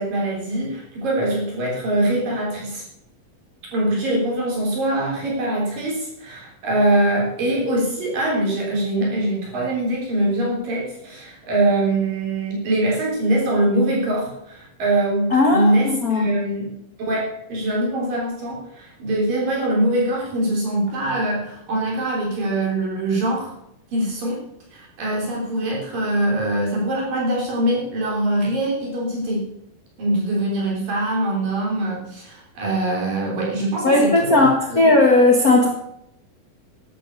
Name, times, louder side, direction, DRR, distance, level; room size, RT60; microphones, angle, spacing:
voice 1, 0.0-2.8 3.7-16.7 17.0-23.5 23.9-24.4 24.7-29.5 30.0-34.8 35.4-35.7, right 1 dB, 65° right, -3 dB, 5.2 m, -23 dB
voice 2, 15.3-16.3 33.8-35.7, left 2 dB, 50° left, 0 dB, 1.0 m, -16 dB
12.0 x 10.5 x 6.9 m, 0.79 s
omnidirectional pair, 4.2 m